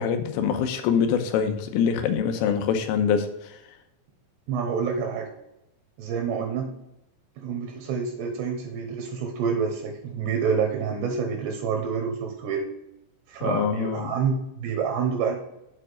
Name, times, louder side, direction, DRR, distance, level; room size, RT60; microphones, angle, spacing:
voice 1, 0.0-3.5 13.4-14.1, left 7 dB, 85° left, 7 dB, 3.3 m, -24 dB
voice 2, 4.5-5.3 6.0-6.7 7.4-12.6 13.3-15.4, right 6 dB, 75° right, 3 dB, 2.7 m, -27 dB
8.4 x 4.7 x 5.0 m, 0.88 s
omnidirectional pair, 5.8 m